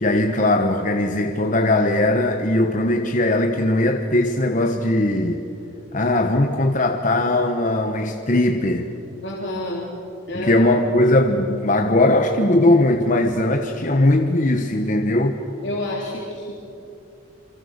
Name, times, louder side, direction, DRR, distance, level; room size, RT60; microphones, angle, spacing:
voice 1, 0.0-5.4 5.9-8.9 10.3-15.4, left 1 dB, 40° left, 4 dB, 1.1 m, -19 dB
voice 2, 9.2-9.8 10.3-10.7 15.6-16.5, left 1 dB, 60° left, -3 dB, 3.6 m, -28 dB
27.5 x 25.0 x 6.7 m, 2.8 s
head